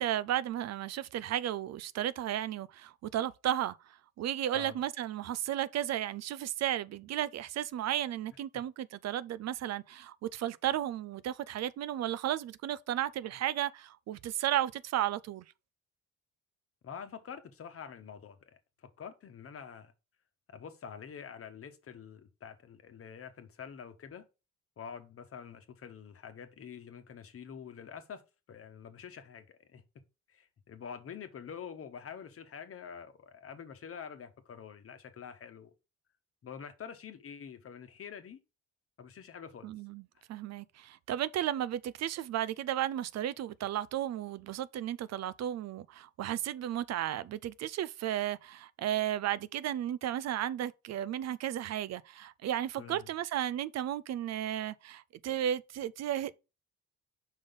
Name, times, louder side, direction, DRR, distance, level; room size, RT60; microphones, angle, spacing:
voice 1, 0.0-3.8 4.2-15.4 39.6-40.0 40.3-56.4, right 12 dB, 60° right, 0.4 m, -34 dB
voice 2, 16.8-18.4 18.8-19.9 20.5-24.2 24.8-28.2 28.5-29.8 30.3-35.7 36.4-38.4 39.0-39.7 40.1-40.2 52.8-53.1, left 7 dB, 50° left, 1.1 m, -46 dB
5.4 x 3.9 x 5.2 m
cardioid pair, 90°, 30 cm